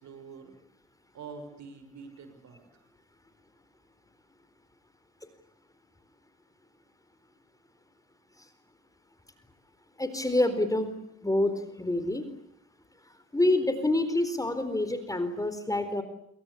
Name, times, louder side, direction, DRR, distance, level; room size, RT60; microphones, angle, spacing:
voice 1, 0.0-0.5 1.1-2.6, right 5 dB, 70° right, 8 dB, 6.2 m, -45 dB
voice 2, 10.0-10.9 11.2-12.3 13.3-16.0, left 1 dB, 10° left, 10 dB, 4.2 m, -27 dB
27.0 x 24.0 x 8.5 m, 0.73 s
cardioid pair, 90°, 30 cm